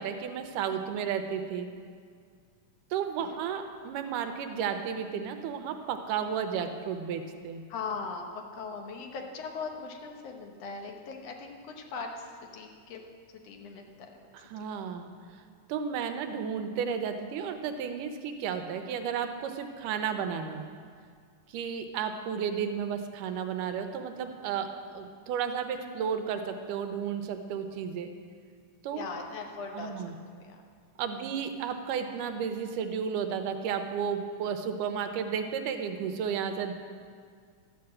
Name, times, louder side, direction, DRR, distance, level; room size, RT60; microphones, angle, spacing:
voice 1, 0.0-1.7 2.9-7.6 14.3-15.4 15.7-20.7 21.5-28.1 28.8-29.0 29.7-30.1 31.0-36.7, right 7 dB, 85° right, 7 dB, 2.3 m, -33 dB
voice 2, 7.7-13.0 13.4-14.3 14.6-14.7 28.9-30.6 31.0-31.3, left 4 dB, 65° left, 3 dB, 1.8 m, -40 dB
13.0 x 5.9 x 7.6 m, 2.1 s
omnidirectional pair, 3.7 m